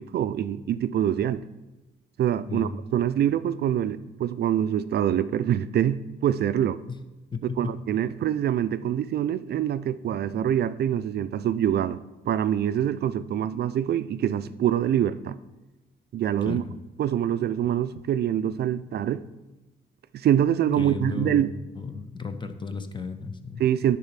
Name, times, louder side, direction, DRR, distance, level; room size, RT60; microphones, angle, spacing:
voice 1, 0.0-1.4 2.2-6.8 7.6-15.4 16.1-16.6 17.0-19.2 20.1-21.5 23.6-24.0, right 10 dB, 55° right, 13 dB, 0.4 m, -25 dB
voice 2, 7.3-7.8 16.4-16.7 20.8-21.5 21.8-23.6, left 4 dB, 25° left, 9 dB, 0.8 m, -34 dB
10.5 x 4.1 x 5.8 m, 1.1 s
cardioid pair, 90°, 20 cm